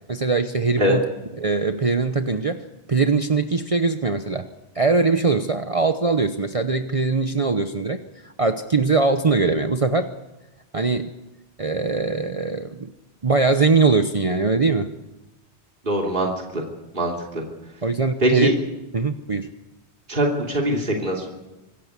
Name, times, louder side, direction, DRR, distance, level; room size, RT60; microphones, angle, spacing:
voice 1, 0.1-1.0 1.4-2.6 2.9-4.5 4.7-10.1 10.7-11.1 11.6-12.9 13.2-14.9 17.8-18.5 18.9-19.5, right 4 dB, 35° right, 8 dB, 0.9 m, -21 dB
voice 2, 15.8-16.6 16.9-17.4 18.2-18.5 20.1-21.3, right 1 dB, 50° right, 0 dB, 3.2 m, -22 dB
25.5 x 14.5 x 8.2 m, 1.0 s
omnidirectional pair, 1.1 m